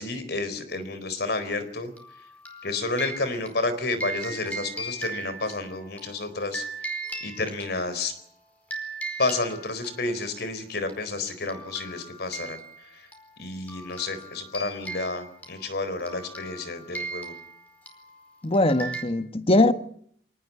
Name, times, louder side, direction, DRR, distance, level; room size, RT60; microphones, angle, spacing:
voice 1, 0.0-1.9 2.6-8.1 9.2-12.6 12.9-13.1 13.4-17.3, left 3 dB, 65° left, 4.1 m, -30 dB
sound 1, 2.0-8.2 8.7-10.4 10.9-11.0 11.3-19.0, right 2 dB, 10° left, 4.9 m, -38 dB
voice 2, 18.4-19.7, left 2 dB, 35° left, 1.4 m, -21 dB
25.0 x 18.5 x 8.5 m
head